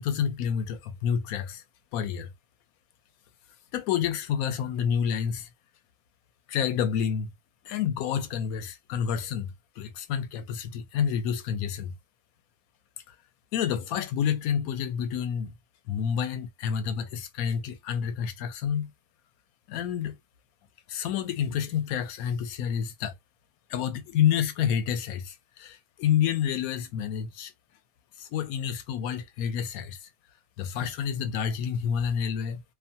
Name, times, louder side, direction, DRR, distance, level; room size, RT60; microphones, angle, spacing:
voice 1, 0.0-1.6 1.9-2.3 3.7-5.5 6.5-7.3 7.7-9.5 9.8-11.9 13.1-13.2 13.5-15.5 15.9-18.9 19.7-20.2 20.9-23.1 23.7-27.5 28.2-30.0 30.6-32.6, left 8 dB, 85° left, 1.0 m, -29 dB
2.6 x 2.2 x 2.7 m
omnidirectional pair, 1.5 m